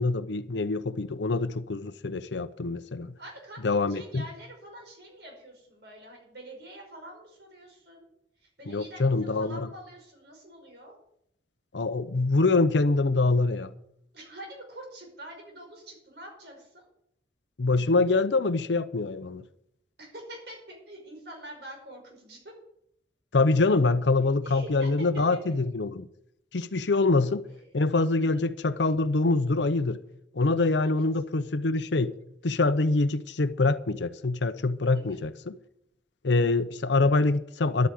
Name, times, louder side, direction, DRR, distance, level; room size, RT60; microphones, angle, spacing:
voice 1, 0.0-3.1 3.6-4.3 8.7-9.7 11.7-13.7 17.6-19.4 23.3-26.1 26.5-27.4 27.7-30.0 30.3-32.1 32.4-35.5 36.2-37.9, left 3 dB, 80° left, 0.7 m, -25 dB
voice 2, 3.2-8.1 8.4-11.0 14.1-16.9 20.0-22.5 24.2-25.4 27.5-27.6 28.2-28.4 30.8-31.0 34.9-35.2 36.3-36.4, right 1 dB, 65° right, 5.4 m, -46 dB
12.0 x 8.4 x 9.3 m
head